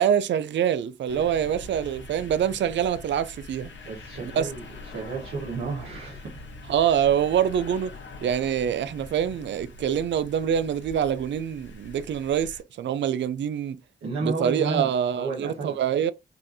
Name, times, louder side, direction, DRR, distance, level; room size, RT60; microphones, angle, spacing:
voice 1, 0.0-3.7 4.2-4.5 6.7-7.9 8.2-13.8 14.2-16.1, right 9 dB, 65° right, 0.4 m, -25 dB
sound 1, 1.1-12.6, left 3 dB, 65° left, 1.2 m, -43 dB
voice 2, 3.8-6.4 14.0-15.8, right 3 dB, 90° right, 1.2 m, -32 dB
5.4 x 2.6 x 2.7 m
cardioid pair, 50°, 20 cm